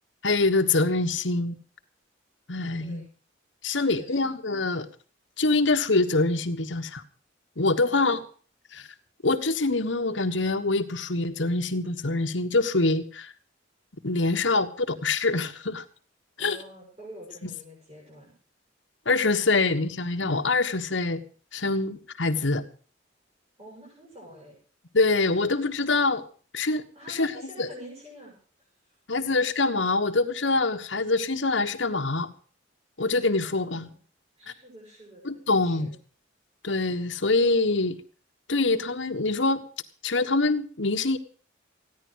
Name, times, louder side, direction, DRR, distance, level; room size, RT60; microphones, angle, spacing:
voice 1, 0.2-1.6 2.5-3.1 3.6-4.9 5.4-7.0 7.6-8.2 8.7-8.9 9.2-13.3 14.0-15.8 16.4-16.6 19.0-21.2 21.5-22.6 24.9-26.2 26.5-27.3 27.6-27.7 29.1-32.3 33.0-33.9 35.2-35.9 36.6-38.0 38.5-39.7 40.0-41.2, left 3 dB, 70° left, 7 dB, 1.4 m, -25 dB
voice 2, 3.7-4.3 7.8-8.1 8.7-8.8 16.4-18.3 23.6-24.6 26.9-28.4 33.4-34.0 34.4-35.2 35.6-35.9, equal, 35° right, -5 dB, 7.2 m, -47 dB
15.5 x 10.5 x 6.3 m, 0.42 s
head